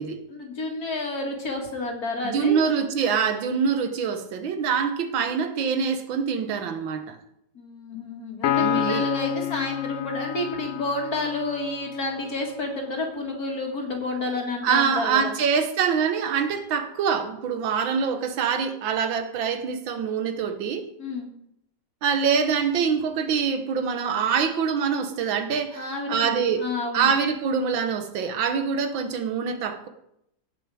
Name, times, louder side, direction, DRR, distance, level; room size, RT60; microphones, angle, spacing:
voice 1, 0.3-2.6 7.5-15.3 21.0-21.3 25.7-27.1, left 2 dB, 50° left, 2 dB, 2.5 m, -30 dB
voice 2, 2.2-7.2 8.5-9.1 14.6-20.9 22.0-26.6 26.9-29.9, right 6 dB, 85° right, 8 dB, 1.8 m, -25 dB
Piano, 8.4-12.0, left 11 dB, 70° left, 0.7 m, -28 dB
17.0 x 6.1 x 4.9 m, 0.78 s
omnidirectional pair, 2.0 m